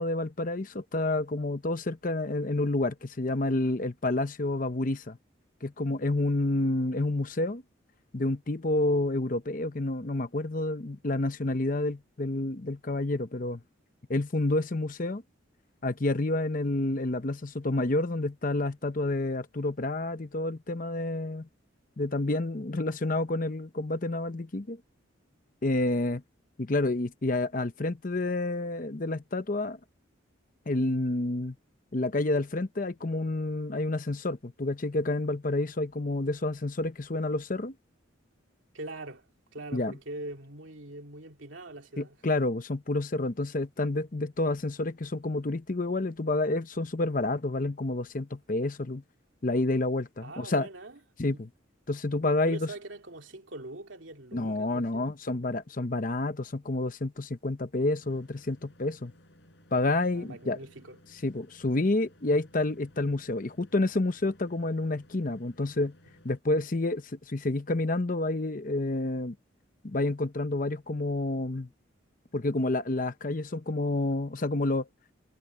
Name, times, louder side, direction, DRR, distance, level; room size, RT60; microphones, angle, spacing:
voice 1, 0.0-5.2 5.6-7.6 8.1-13.6 14.1-15.2 15.8-21.5 22.0-24.8 25.6-26.2 26.6-29.8 30.7-31.5 31.9-37.7 39.7-39.9 42.0-49.0 49.4-50.7 51.2-51.5 51.9-52.7 54.3-59.1 59.7-60.6 61.2-65.9 66.2-69.4 69.8-71.7 72.3-74.9, left 2 dB, 40° left, 0.8 m, -29 dB
voice 2, 38.7-42.2 50.2-51.0 51.3-51.4 52.4-55.1 60.1-61.0, right 2 dB, 70° right, 2.7 m, -43 dB
sound 1, 58.0-66.4, left 1 dB, 60° left, 7.3 m, -58 dB
head